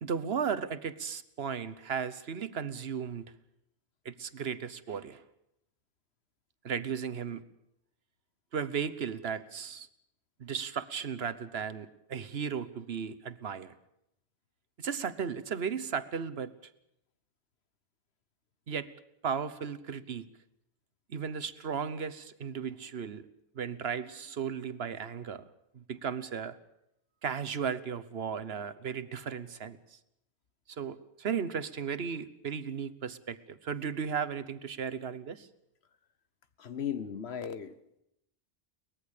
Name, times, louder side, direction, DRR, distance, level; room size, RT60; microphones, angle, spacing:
voice 1, 0.0-3.2 4.0-5.2 6.6-7.4 8.5-9.9 10.4-13.7 14.8-16.5 18.7-18.9 19.2-20.3 21.1-23.3 23.5-25.4 25.7-26.6 27.2-30.0 30.7-35.5, right 7 dB, 75° right, 1.3 m, -35 dB
voice 2, 36.6-38.0, left 8 dB, 85° left, 1.4 m, -37 dB
23.0 x 20.0 x 6.7 m
omnidirectional pair, 1.1 m